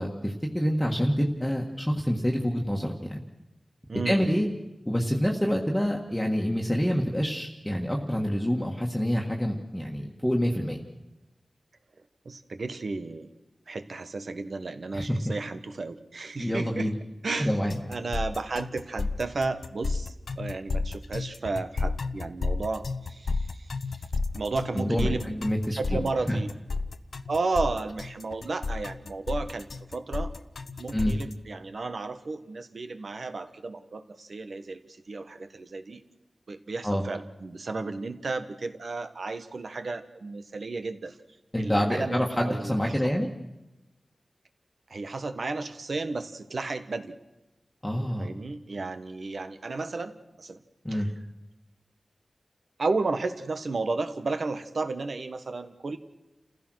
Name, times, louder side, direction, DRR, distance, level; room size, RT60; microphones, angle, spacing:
voice 1, 0.0-3.2 4.1-4.5 4.9-10.8 14.9-15.2 16.4-17.0 17.4-17.8 24.7-26.0 26.3-26.4 30.9-31.1 36.8-37.0 41.5-43.3 47.8-48.3 50.8-51.1, equal, 10° left, -1 dB, 1.7 m, -27 dB
voice 2, 3.9-4.3 12.2-13.3 13.7-16.9 17.2-17.5 17.9-23.7 24.3-25.3 25.7-26.5 27.3-29.7 29.9-30.3 30.8-36.0 36.5-41.1 41.6-43.1 44.9-47.1 48.0-50.1 50.4-50.6 50.9-51.0 52.8-56.0, right 3 dB, 70° right, 9 dB, 1.4 m, -33 dB
sound 1, 17.7-31.3, left 3 dB, 90° left, 0.9 m, -32 dB
29.0 x 15.5 x 6.4 m, 0.99 s
wide cardioid pair, 95°, 0 cm